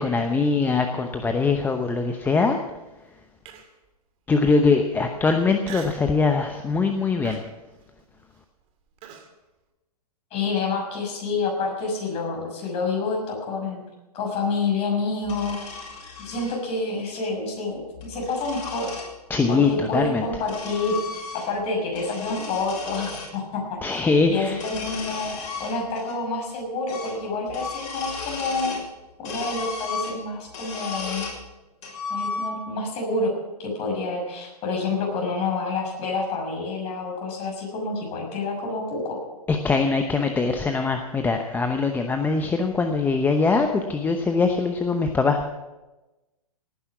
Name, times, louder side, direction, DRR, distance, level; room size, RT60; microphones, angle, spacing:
voice 1, 0.0-2.6 4.3-7.4 19.3-20.2 23.8-24.6 39.5-45.4, left 4 dB, 10° left, 5 dB, 0.8 m, -22 dB
Human voice, 3.5-3.9 4.4-4.5 5.6-6.1 6.5-6.8 7.2-9.3, right 7 dB, 30° right, 2.4 m, -42 dB
voice 2, 10.3-13.8 14.1-15.9 16.2-18.9 19.5-21.0 21.3-24.0 24.3-25.3 25.6-28.8 29.2-31.3 32.1-33.3 33.6-39.2, left 3 dB, 30° left, 0 dB, 6.4 m, -28 dB
sound 1, 15.2-16.6 17.8-19.1 20.0-21.6 21.9-23.3 24.5-26.2 26.4-26.5 26.9-27.2 27.5-28.9 29.2-31.4 31.8-32.8, left 4 dB, 50° left, 6.5 m, -35 dB
18.0 x 10.0 x 6.0 m, 1.1 s
hypercardioid pair, 125°, 20 cm